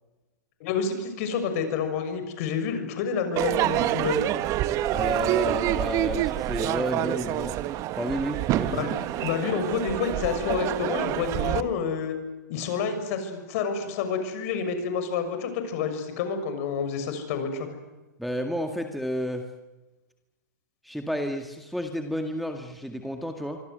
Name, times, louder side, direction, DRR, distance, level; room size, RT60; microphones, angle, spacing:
voice 1, 0.6-4.2 8.7-12.1 12.5-17.7, left 6 dB, 50° left, 8 dB, 6.6 m, -29 dB
Crowd / Fireworks, 3.4-11.6, right 14 dB, 35° right, 1.2 m, -27 dB
voice 2, 4.9-7.6 8.0-8.9 18.2-19.5 20.8-23.6, equal, ahead, 4 dB, 2.0 m, -31 dB
25.5 x 25.5 x 8.0 m, 1.1 s
hypercardioid pair, 125°, 10 cm